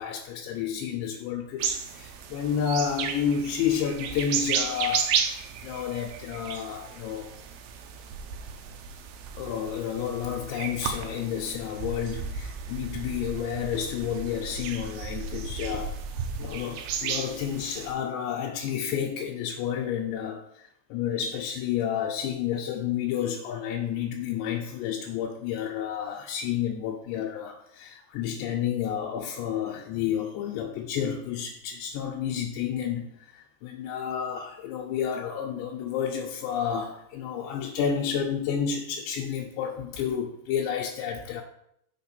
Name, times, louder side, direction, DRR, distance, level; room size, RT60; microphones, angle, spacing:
voice 1, 0.0-7.3 9.4-16.0 16.4-41.4, left 8 dB, 85° left, -1 dB, 2.9 m, -30 dB
sound 1, 1.6-17.9, right 6 dB, 80° right, 2.4 m, -34 dB
6.4 x 4.4 x 5.9 m, 0.74 s
omnidirectional pair, 4.9 m